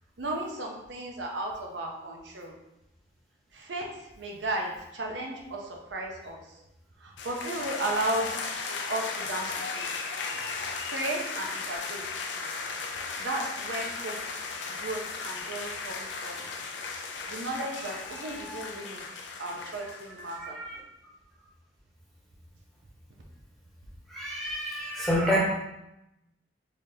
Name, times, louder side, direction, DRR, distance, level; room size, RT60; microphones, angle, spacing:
voice 1, 0.2-2.5 3.6-3.9 4.2-6.4 7.0-8.3 8.7-9.5 9.8-9.9 10.9-12.0 13.2-14.2 14.8-16.4 17.3-19.0 19.4-20.6, right 1 dB, 90° right, 0 dB, 0.7 m, -34 dB
sound 1, 7.2-20.4, left 4 dB, 85° left, 0.5 m, -36 dB
voice 2, 18.2-18.7 19.4-19.5 19.8-20.8 24.1-25.4, equal, ahead, -6 dB, 0.9 m, -31 dB
3.9 x 3.3 x 2.8 m, 0.87 s
head